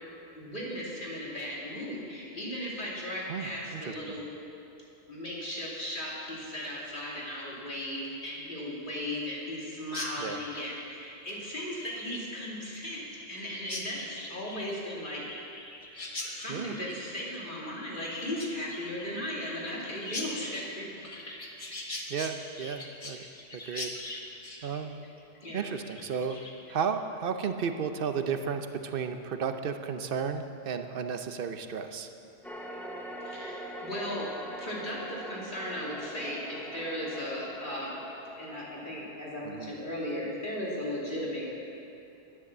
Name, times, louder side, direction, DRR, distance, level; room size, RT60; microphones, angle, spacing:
voice 1, 0.4-4.2 5.1-13.0 13.3-15.2 16.2-21.1 22.1-22.6 25.4-25.7 33.2-34.3 34.6-38.0 38.4-41.5, left 1 dB, 50° left, -5 dB, 2.8 m, -37 dB
voice 2, 3.3-4.1 10.2-10.4 16.5-16.8 22.1-23.2 23.5-23.9 24.6-25.0 25.5-26.4 26.7-32.1 39.4-39.7, right 6 dB, 60° right, 8 dB, 0.9 m, -33 dB
Chirp tweet, 9.9-26.7, left 2 dB, 30° left, 1.2 m, -42 dB
sound 1, 32.4-38.9, equal, ahead, 0.8 m, -42 dB
10.5 x 10.0 x 7.3 m, 2.8 s
omnidirectional pair, 1.1 m